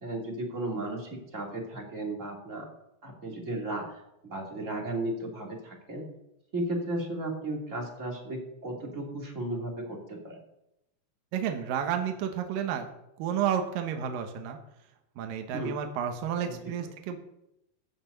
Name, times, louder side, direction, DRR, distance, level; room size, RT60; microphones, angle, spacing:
voice 1, 0.0-2.7 3.0-4.0 4.2-6.0 6.5-10.4 15.5-15.7 16.4-16.9, right 1 dB, 20° right, -1 dB, 2.6 m, -35 dB
voice 2, 11.3-12.9 13.2-14.6 15.2-17.2, right 8 dB, 70° right, 5 dB, 2.7 m, -31 dB
15.5 x 6.0 x 8.1 m, 0.85 s
omnidirectional pair, 4.4 m